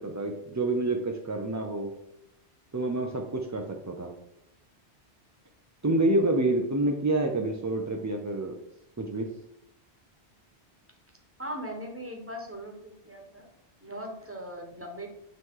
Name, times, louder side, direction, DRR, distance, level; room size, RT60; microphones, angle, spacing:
voice 1, 0.0-1.9 2.7-4.1 5.8-8.5 9.0-9.3, right 2 dB, 30° right, 2 dB, 0.3 m, -28 dB
voice 2, 11.4-13.5 13.8-15.1, equal, 15° right, 1 dB, 1.1 m, -39 dB
9.3 x 3.1 x 3.7 m, 0.83 s
omnidirectional pair, 1.1 m